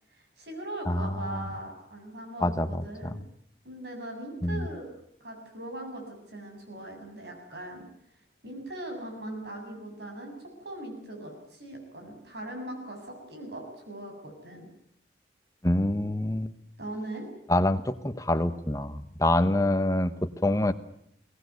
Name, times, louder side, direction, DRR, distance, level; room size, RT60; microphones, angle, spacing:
voice 1, 0.1-3.2 3.6-4.9 5.2-7.9 8.4-14.7 16.8-17.3, right 1 dB, 70° right, 3 dB, 7.3 m, -40 dB
voice 2, 0.9-1.4 2.4-3.1 4.4-4.7 15.6-16.5 17.5-20.7, left 1 dB, 20° left, 10 dB, 1.1 m, -26 dB
23.0 x 18.5 x 9.5 m, 0.72 s
head